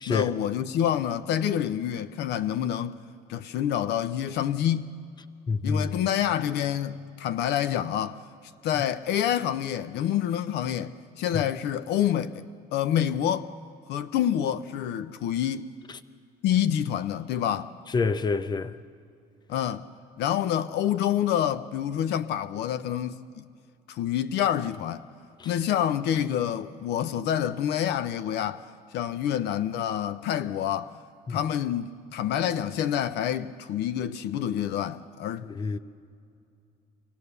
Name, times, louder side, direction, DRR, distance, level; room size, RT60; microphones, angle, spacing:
voice 1, 0.1-3.0 3.3-5.0 5.6-8.2 8.6-13.5 13.9-15.7 16.4-17.7 19.5-19.9 20.2-23.2 23.9-25.0 25.4-28.7 28.9-30.9 31.3-35.5, left 10 dB, 80° left, 0.7 m, -27 dB
voice 2, 5.5-5.9 17.9-18.7 25.4-25.5 31.3-31.4 35.5-35.8, left 4 dB, 25° left, 0.7 m, -27 dB
25.0 x 16.5 x 6.8 m
cardioid pair, 110°, 17 cm